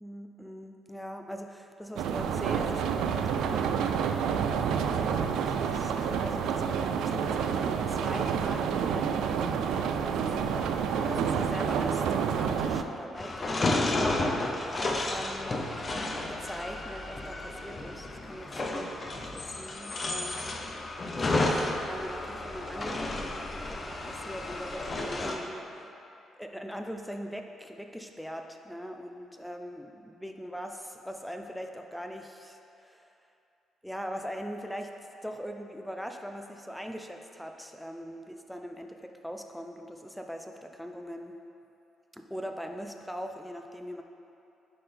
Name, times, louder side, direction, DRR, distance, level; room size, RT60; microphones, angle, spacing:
voice 1, 0.0-3.7 4.0-6.7 7.0-15.9 16.3-20.6 21.2-25.9 26.4-33.1 33.8-34.9 35.2-41.3 42.1-44.0, equal, ahead, 4 dB, 0.4 m, -41 dB
sound 1, 2.0-12.8, right 7 dB, 85° right, 0.3 m, -28 dB
sound 2, 13.2-25.4, left 2 dB, 35° left, 0.7 m, -32 dB
10.0 x 3.9 x 3.4 m, 2.8 s
cardioid pair, 90°, 0 cm